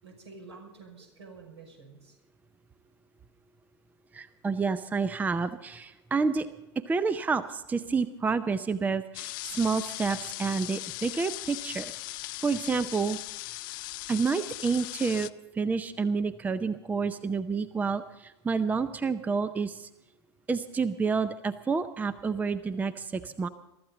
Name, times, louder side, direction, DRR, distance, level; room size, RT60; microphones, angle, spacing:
voice 1, 0.0-2.2, right 4 dB, 75° right, 2 dB, 5.8 m, -49 dB
voice 2, 4.1-6.5 6.8-13.2 14.1-15.3 15.5-19.9 20.5-23.5, right 4 dB, 10° right, 14 dB, 0.6 m, -29 dB
sound 1, 9.1-15.3, left 21 dB, 50° left, 0.5 m, -39 dB
23.0 x 13.5 x 3.9 m, 0.95 s
figure-of-eight pair, 90°, 14 cm